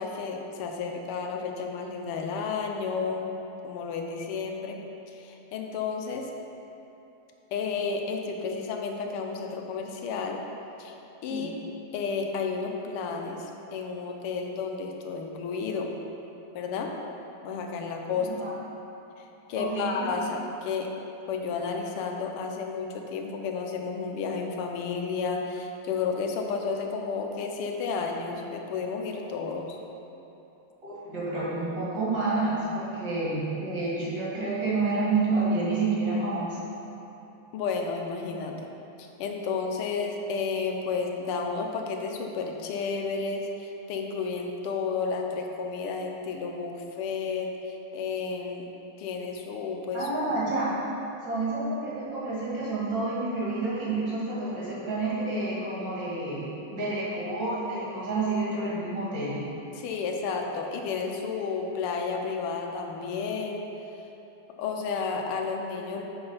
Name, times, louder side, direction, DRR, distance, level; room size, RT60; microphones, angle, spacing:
voice 1, 0.0-3.3 3.6-4.8 5.1-6.3 7.5-10.4 10.8-10.9 11.2-11.6 11.9-15.9 16.5-16.9 17.4-18.3 19.2-20.9 21.3-29.8 37.5-38.7 39.0-48.7 49.0-50.1 59.7-63.6 64.6-66.0, left 5 dB, 85° left, 2 dB, 1.6 m, -32 dB
voice 2, 19.6-20.1 30.8-36.6 49.9-50.8 51.2-59.4, right 3 dB, 55° right, -8 dB, 2.6 m, -29 dB
7.9 x 4.2 x 5.6 m, 2.9 s
omnidirectional pair, 2.4 m